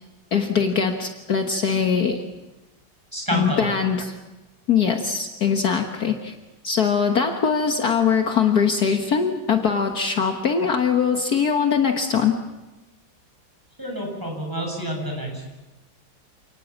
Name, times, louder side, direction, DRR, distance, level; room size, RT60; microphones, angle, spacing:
voice 1, 0.3-2.2 3.3-4.1 4.7-6.3 6.6-12.4, left 6 dB, 55° left, 4 dB, 1.9 m, -22 dB
voice 2, 3.1-3.7 13.8-15.4, equal, 10° right, 0 dB, 7.6 m, -28 dB
29.0 x 19.0 x 7.4 m, 1.1 s
omnidirectional pair, 2.0 m